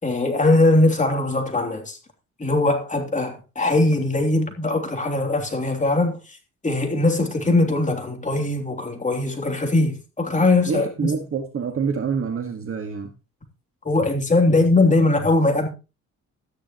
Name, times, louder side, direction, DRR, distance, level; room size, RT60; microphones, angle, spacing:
voice 1, 0.0-2.0 2.4-6.2 6.6-11.1 13.8-15.7, left 2 dB, 25° left, 3.1 m, -20 dB
voice 2, 10.7-13.1, right 6 dB, 45° right, 1.8 m, -26 dB
13.0 x 10.0 x 3.1 m
cardioid pair, 90°, 30 cm